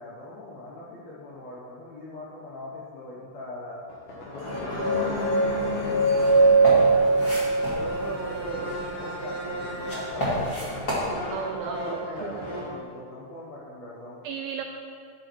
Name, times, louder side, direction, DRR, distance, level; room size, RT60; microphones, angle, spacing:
voice 1, 0.0-3.8 4.1-7.2 7.6-10.8 11.6-14.2, left 2 dB, 75° left, -6 dB, 1.5 m, -41 dB
sound 1, 3.9-12.8, equal, 50° left, 1.9 m, -34 dB
sound 2, 4.5-8.6, right 3 dB, 65° right, 1.6 m, -22 dB
sound 3, 5.6-11.1, left 1 dB, 30° left, 2.2 m, -33 dB
voice 2, 8.0-8.7 11.3-12.5 14.2-14.6, right 7 dB, 90° right, 4 dB, 2.1 m, -35 dB
10.0 x 9.7 x 4.6 m, 2.3 s
omnidirectional pair, 4.8 m